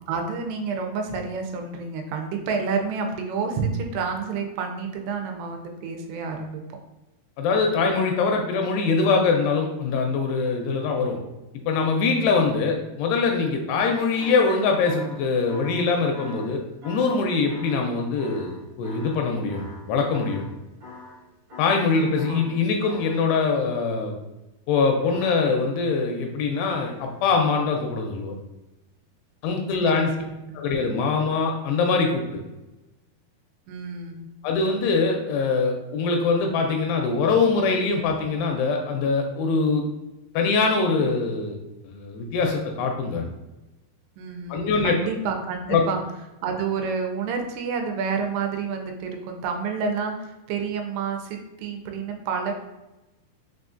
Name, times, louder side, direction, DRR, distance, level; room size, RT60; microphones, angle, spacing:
voice 1, 0.0-6.6 21.9-22.4 29.8-30.6 33.7-34.3 44.2-46.0 46.4-52.5, right 5 dB, 85° right, 4 dB, 2.7 m, -29 dB
voice 2, 7.4-11.2 11.7-19.6 19.9-20.4 21.6-24.1 24.7-28.4 29.4-30.1 30.5-32.4 34.4-39.8 40.3-41.6 41.8-43.2 44.5-44.9 45.7-45.8, left 4 dB, 85° left, 3 dB, 2.5 m, -23 dB
sound 1, 14.2-20.6 20.8-21.2 21.5-23.6 25.0-25.8 26.5-27.2 28.2-28.3, left 2 dB, 65° right, 1.7 m, -44 dB
6.2 x 2.4 x 2.5 m, 1.0 s
omnidirectional pair, 4.8 m